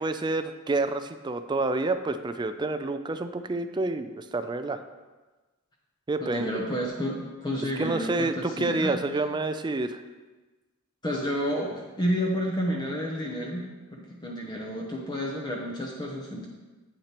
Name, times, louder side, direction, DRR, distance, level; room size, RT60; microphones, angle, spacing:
voice 1, 0.0-4.8 6.1-6.5 7.8-10.0, right 2 dB, 20° right, 9 dB, 0.4 m, -28 dB
voice 2, 6.2-9.0 11.0-16.5, equal, 20° left, -2 dB, 0.8 m, -30 dB
8.7 x 8.1 x 3.0 m, 1.2 s
head